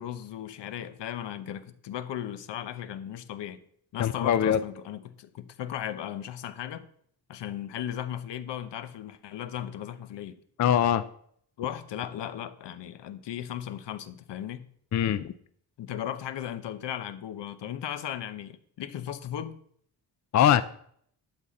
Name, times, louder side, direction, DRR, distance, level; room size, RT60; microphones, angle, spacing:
voice 1, 0.0-3.6 3.9-6.9 7.3-10.3 11.6-14.7 15.8-19.6, left 10 dB, 80° left, 12 dB, 0.9 m, -36 dB
voice 2, 4.0-4.6 10.6-11.0 14.9-15.3 20.3-20.6, left 10 dB, 45° left, 13 dB, 0.4 m, -22 dB
12.0 x 4.1 x 7.5 m, 0.63 s
wide cardioid pair, 155°, 42 cm